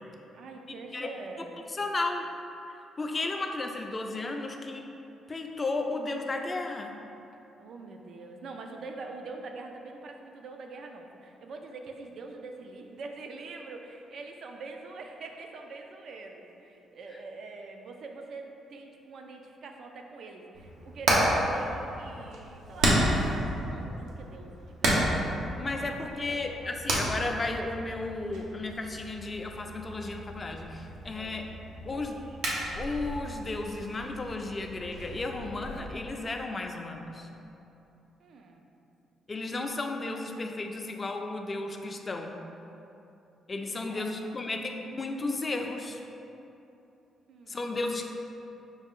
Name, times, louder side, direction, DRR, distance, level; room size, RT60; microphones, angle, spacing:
voice 1, 0.3-1.8 7.6-25.3 25.8-26.0 26.3-26.8 31.2-31.6 31.9-32.0 32.3-32.4 38.2-38.6 43.6-44.2 47.3-47.7, right 3 dB, 65° right, 3 dB, 0.4 m, -44 dB
voice 2, 1.7-2.3 3.0-4.8 5.3-7.0 25.6-31.4 31.9-32.2 32.8-37.3 39.3-42.4 43.5-46.0 47.5-48.1, left 2 dB, 30° left, 3 dB, 0.4 m, -34 dB
Hammer, 20.5-35.8, right 1 dB, 85° right, 0.8 m, -32 dB
5.3 x 2.4 x 3.6 m, 2.9 s
cardioid pair, 85°, 0 cm